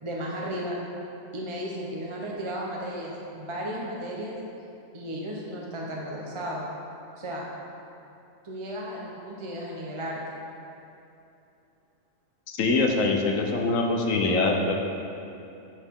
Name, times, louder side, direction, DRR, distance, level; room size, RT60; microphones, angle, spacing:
voice 1, 0.0-0.8 1.3-4.4 4.9-6.7 7.2-7.5 8.4-10.2, equal, 25° right, -3 dB, 0.8 m, -34 dB
voice 2, 12.5-14.7, left 3 dB, 75° left, 1 dB, 1.3 m, -24 dB
9.9 x 6.5 x 3.7 m, 2.8 s
omnidirectional pair, 1.4 m